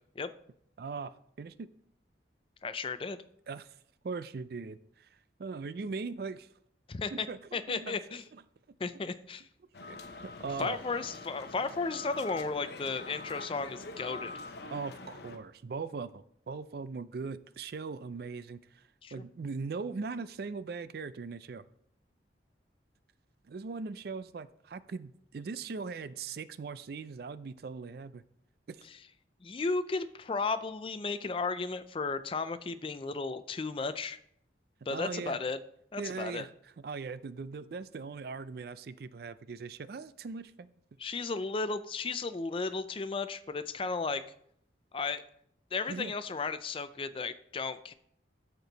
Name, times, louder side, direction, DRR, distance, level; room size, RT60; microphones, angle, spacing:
voice 1, 0.8-1.7 3.5-3.7 4.0-5.1 5.4-6.5 7.1-8.0 9.9-10.8 14.7-18.8 19.1-21.6 23.5-28.2 28.7-28.8 34.9-35.4 36.0-36.5 36.8-40.7 45.9-46.1, right 4 dB, 55° right, 15 dB, 0.4 m, -40 dB
voice 2, 2.6-3.2 6.9-7.3 7.5-8.2 8.8-9.5 10.6-14.3 19.0-19.2 29.4-34.2 34.9-35.6 35.9-36.5 41.0-44.3 44.9-45.2 45.7-47.9, left 4 dB, 30° left, 12 dB, 0.4 m, -34 dB
sound 1, 9.7-15.4, left 3 dB, 65° left, 0.8 m, -44 dB
13.5 x 4.5 x 3.9 m, 0.68 s
head